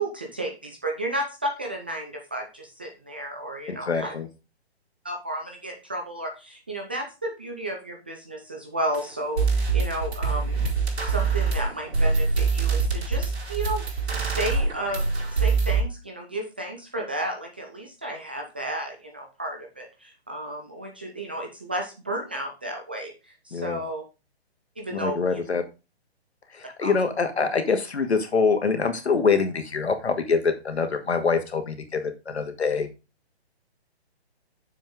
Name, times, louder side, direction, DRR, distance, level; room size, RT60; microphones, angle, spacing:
voice 1, 0.0-4.1 5.0-15.0 15.3-24.0 24.8-25.4 26.8-26.9, right 1 dB, 10° right, 2 dB, 0.4 m, -33 dB
voice 2, 3.7-4.3 23.5-23.8 24.9-25.6 26.5-32.9, left 5 dB, 80° left, 7 dB, 2.1 m, -25 dB
sound 1, 8.9-9.0 9.4-15.8, right 4 dB, 80° right, 4.4 m, -24 dB
7.2 x 6.0 x 3.7 m, 0.28 s
hypercardioid pair, 150°, 32 cm